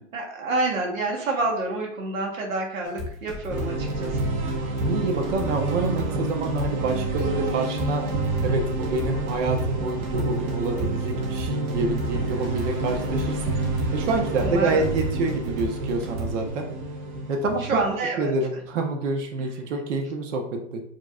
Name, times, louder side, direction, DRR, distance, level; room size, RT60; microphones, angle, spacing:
voice 1, 0.1-4.3 14.3-14.8 17.6-18.3, right 2 dB, 90° right, 0 dB, 1.4 m, -28 dB
sound 1, 2.8-16.5, equal, 50° right, 1.2 m, -35 dB
sound 2, 3.5-17.9, right 2 dB, 30° right, 0.7 m, -29 dB
voice 2, 4.8-8.1 8.4-13.6 13.9-16.7 17.3-17.7 18.2-20.8, right 3 dB, 65° right, 4 dB, 1.0 m, -27 dB
4.7 x 2.9 x 2.4 m, 0.66 s
hypercardioid pair, 115°, 39 cm